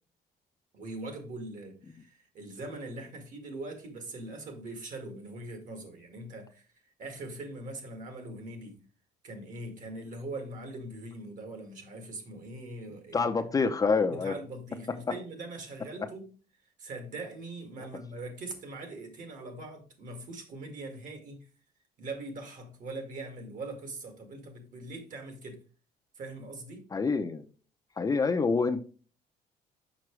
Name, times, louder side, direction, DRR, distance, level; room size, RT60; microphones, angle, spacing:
voice 1, 0.7-6.7 7.0-8.8 9.2-13.5 14.1-16.3 16.8-21.5 22.0-25.6 26.2-26.9, right 2 dB, 55° right, 2.0 m, -42 dB
voice 2, 13.1-14.3 26.9-27.4 28.0-28.8, left 4 dB, 20° left, 0.6 m, -26 dB
6.1 x 5.7 x 3.1 m
cardioid pair, 140°, 16 cm